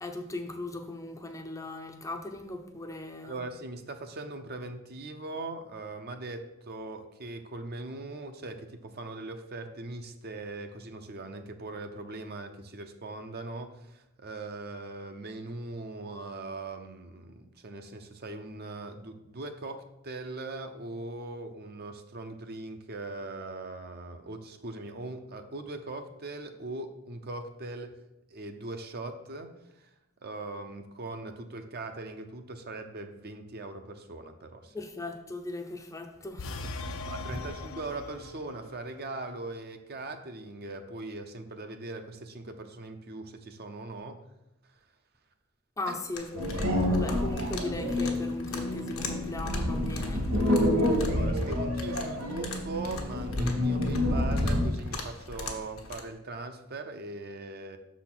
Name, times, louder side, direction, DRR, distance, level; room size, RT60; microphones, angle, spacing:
voice 1, 0.0-3.4 34.7-37.0 37.3-37.5 45.8-50.3, left 2 dB, 15° left, 0.5 m, -38 dB
voice 2, 3.2-27.9 28.3-29.9 30.2-34.7 37.0-44.2 45.9-46.0 51.0-57.8, right 2 dB, 45° right, 0.6 m, -40 dB
sound 1, 36.4-38.6, left 2 dB, 70° left, 0.5 m, -39 dB
sound 2, 46.1-56.0, left 3 dB, 90° left, 1.2 m, -42 dB
sound 3, 46.3-54.8, left 1 dB, 65° right, 1.9 m, -28 dB
6.4 x 4.1 x 6.0 m
head